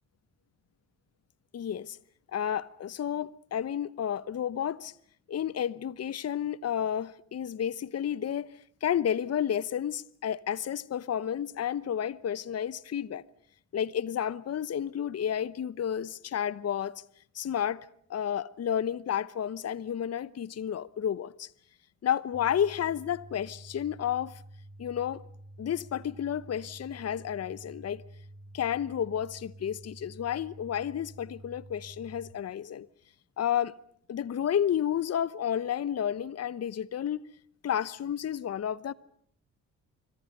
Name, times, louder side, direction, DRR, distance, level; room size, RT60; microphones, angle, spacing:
voice 1, 1.5-2.0 2.3-4.9 5.3-8.5 8.8-13.2 13.7-16.9 17.3-17.8 18.1-21.5 22.0-24.3 24.8-25.2 25.6-28.0 28.5-32.9 33.4-33.7 34.1-37.2 37.6-38.9, left 9 dB, 45° left, 0.9 m, -31 dB
sound 1, 22.3-32.3, right 1 dB, 20° left, 8.0 m, -49 dB
26.5 x 24.0 x 6.7 m
hypercardioid pair, 50°, 36 cm